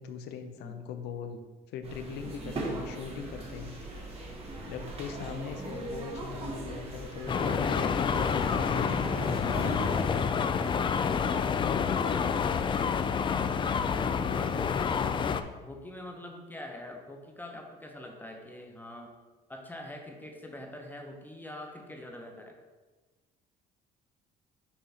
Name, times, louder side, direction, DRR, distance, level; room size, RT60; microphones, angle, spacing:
voice 1, 0.0-4.1 4.6-9.0 11.6-12.2 14.3-14.9, left 6 dB, 80° left, 7 dB, 0.7 m, -40 dB
sound 1, 1.8-10.1, right 2 dB, 35° right, 1.7 m, -39 dB
sound 2, 7.3-15.4, left 6 dB, 30° left, 0.3 m, -28 dB
voice 2, 10.6-11.4 13.8-15.2 15.6-19.1 19.5-22.6, left 1 dB, 10° left, 2 dB, 0.9 m, -44 dB
7.0 x 2.9 x 5.7 m, 1.3 s
cardioid pair, 110°, 17 cm